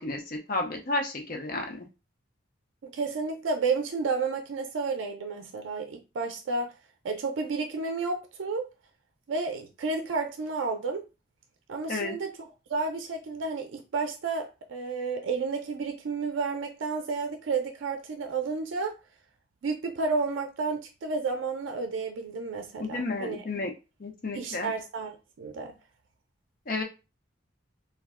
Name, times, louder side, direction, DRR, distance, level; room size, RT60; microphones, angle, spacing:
voice 1, 0.0-1.8 11.9-12.2 22.8-23.7 24.0-24.7 26.7-26.8, left 2 dB, 50° left, 0.6 m, -32 dB
voice 2, 2.8-6.7 7.0-8.7 9.3-11.0 11.7-12.3 12.7-18.9 19.6-23.4 24.3-25.7, right 4 dB, 90° right, 0.4 m, -31 dB
2.3 x 2.1 x 3.5 m
head